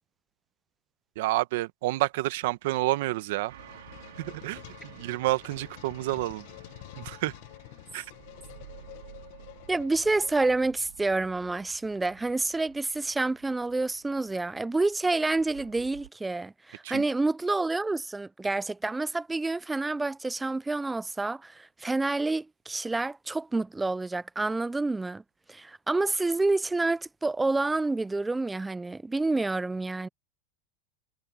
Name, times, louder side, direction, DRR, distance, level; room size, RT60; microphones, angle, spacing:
voice 1, 1.1-3.5 4.2-6.5 6.9-7.3 7.9-8.1 16.8-17.0, right 18 dB, 65° right, 1.2 m, -29 dB
sound 1, 3.0-10.8, left 20 dB, 60° left, 1.4 m, -48 dB
sound 2, 3.5-16.1, right 13 dB, 85° right, 3.1 m, -52 dB
voice 2, 9.7-25.2 25.5-30.1, right 3 dB, 10° right, 0.4 m, -28 dB
supercardioid pair, 140°, 0 cm